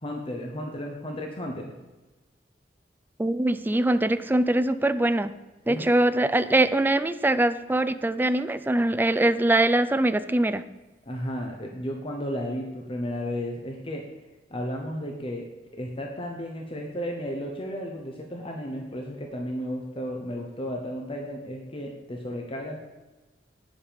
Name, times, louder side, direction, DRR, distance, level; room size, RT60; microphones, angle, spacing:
voice 1, 0.0-1.7 5.7-5.9 11.1-14.0 14.5-15.4 15.7-22.8, equal, 30° left, 1 dB, 1.0 m, -33 dB
voice 2, 3.2-5.3 5.7-10.6, right 1 dB, 10° right, 12 dB, 0.4 m, -23 dB
9.6 x 7.3 x 5.2 m, 1.2 s
head